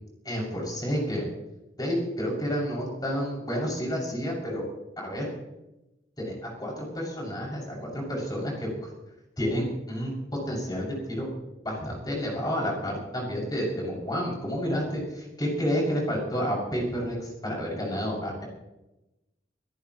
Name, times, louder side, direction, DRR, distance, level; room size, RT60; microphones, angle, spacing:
voice 1, 0.2-1.3 1.8-4.7 5.0-5.3 6.2-8.9 9.4-11.3 11.6-18.4, equal, 20° left, -3 dB, 6.6 m, -30 dB
23.0 x 18.0 x 3.1 m, 0.95 s
head